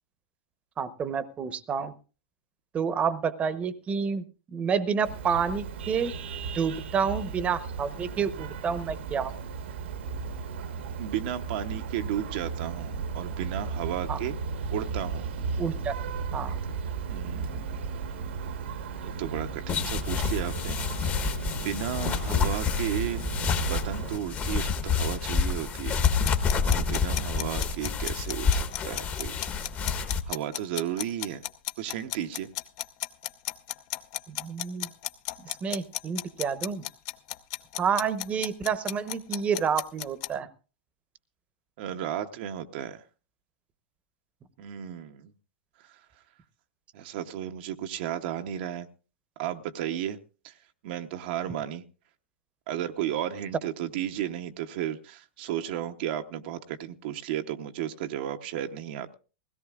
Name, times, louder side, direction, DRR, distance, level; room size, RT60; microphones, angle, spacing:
voice 1, 0.8-1.9 2.7-4.3 4.5-6.1 6.5-9.4 14.1-14.2 15.6-15.9 16.3-16.6 34.3-34.9 35.4-36.8 37.8-40.5, right 6 dB, 20° right, 15 dB, 0.9 m, -29 dB
Vehicle horn car horn honking, 5.0-24.2, right 5 dB, 80° right, 1.4 m, -35 dB
voice 2, 11.0-14.4 14.7-15.3 17.1-17.7 19.0-20.8 21.5-23.3 23.7-29.5 29.9-31.4 31.8-32.5 41.8-43.0 44.6-45.3 46.9-48.9 49.4-50.2 50.4-50.5 50.8-51.8 52.7-59.1, right 11 dB, 55° right, 7 dB, 0.8 m, -34 dB
sound 1, 19.7-30.2, left 5 dB, 25° left, 1.1 m, -28 dB
sound 2, 26.0-40.3, left 15 dB, 45° left, 0.8 m, -34 dB
21.0 x 17.0 x 2.4 m, 0.35 s
hypercardioid pair, 130°, 6 cm